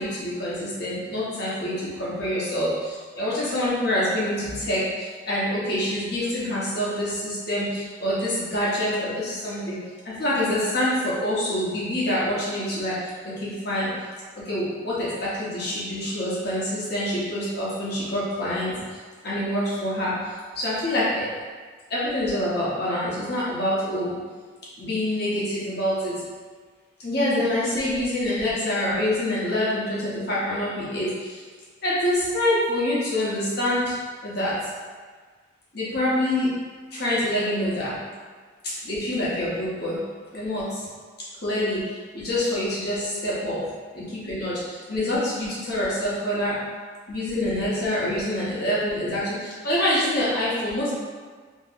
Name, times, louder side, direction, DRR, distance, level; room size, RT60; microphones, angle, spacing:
voice 1, 0.0-9.8 10.0-13.9 14.4-19.0 19.2-20.1 20.6-21.3 21.9-24.1 24.8-26.2 27.0-31.4 31.8-33.9 34.2-34.5 35.7-36.5 36.9-38.0 38.6-40.0 40.3-40.9 41.4-43.6 43.9-46.6 47.1-50.9, left 1 dB, 55° left, -8 dB, 0.9 m, -26 dB
2.9 x 2.8 x 2.5 m, 1.5 s
head